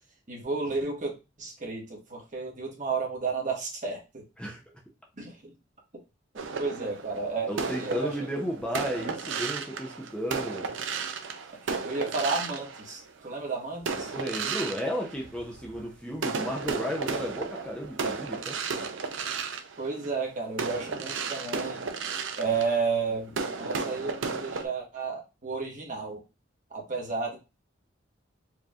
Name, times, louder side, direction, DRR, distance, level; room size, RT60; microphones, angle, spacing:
voice 1, 0.3-4.2 5.2-5.5 6.6-8.3 11.2-14.1 19.8-21.8 22.4-26.2 26.7-27.4, right 4 dB, 45° right, 1.4 m, -32 dB
sound 1, 6.4-13.3 13.8-15.8 16.2-24.7, right 5 dB, 85° right, 0.6 m, -34 dB
voice 2, 7.5-10.8 14.1-18.6, equal, 5° left, 0.7 m, -33 dB
4.7 x 3.2 x 2.4 m
head